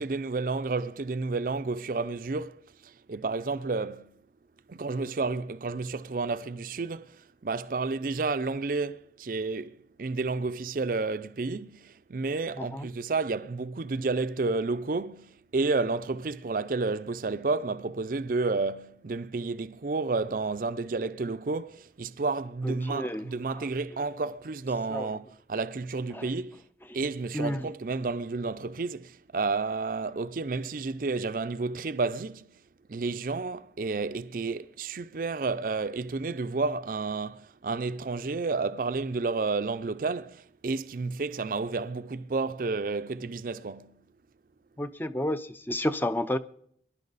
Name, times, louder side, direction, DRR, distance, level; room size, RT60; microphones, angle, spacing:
voice 1, 0.0-4.2 4.7-26.6 26.9-32.5 32.9-44.0, right 3 dB, 50° right, 0.5 m, -31 dB
voice 2, 12.6-12.9 22.6-23.3 23.6-23.7 24.9-25.1 26.1-26.3 27.3-27.7 44.8-46.4, left 1 dB, 10° left, 0.5 m, -31 dB
24.0 x 11.5 x 4.0 m
head